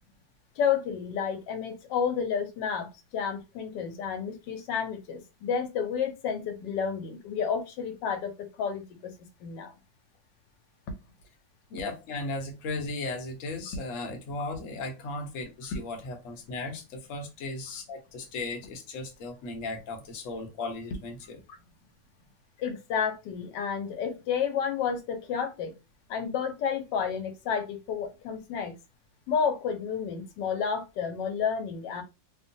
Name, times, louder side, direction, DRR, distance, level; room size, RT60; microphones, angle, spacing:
voice 1, 0.6-9.1 9.4-9.7 22.6-25.7 26.1-28.8 29.3-32.0, left 7 dB, 85° left, 1.3 m, -31 dB
voice 2, 11.7-21.4 22.6-22.7, left 2 dB, 60° left, 1.0 m, -36 dB
2.9 x 2.2 x 2.6 m
omnidirectional pair, 1.8 m